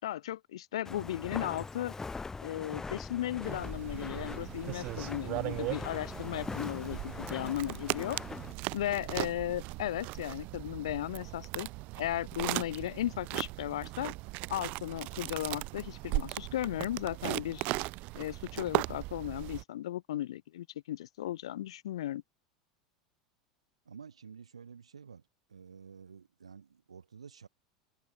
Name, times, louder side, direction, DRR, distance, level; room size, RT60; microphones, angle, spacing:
voice 1, 0.0-1.9 2.4-8.2 8.7-11.7 12.0-14.1 14.5-17.7 18.2-22.2, left 13 dB, 70° left, 6.7 m, -36 dB
Walk footsteps, 0.8-8.5, left 4 dB, 15° left, 2.1 m, -42 dB
sound 1, 3.4-19.6, right 23 dB, 50° right, 1.9 m, -38 dB
voice 2, 23.9-25.2 25.5-27.5, right 6 dB, 80° right, 6.2 m, -51 dB
figure-of-eight pair, 80°, 3 cm